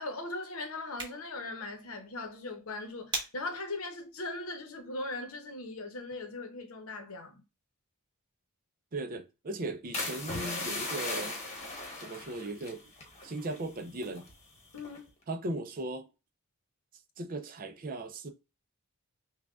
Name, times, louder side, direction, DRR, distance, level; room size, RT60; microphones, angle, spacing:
voice 1, 0.0-7.4 14.7-15.1, left 2 dB, 70° left, 0.8 m, -39 dB
sound 1, 0.7-5.8, right 2 dB, 20° right, 1.2 m, -44 dB
voice 2, 8.9-11.4 12.0-12.8 13.2-14.3 15.3-16.1 17.2-18.3, right 2 dB, 40° right, 0.5 m, -37 dB
sound 2, 9.9-13.7 13.9-14.3 14.8-15.1, left 2 dB, 30° left, 1.0 m, -38 dB
5.8 x 2.3 x 2.4 m
head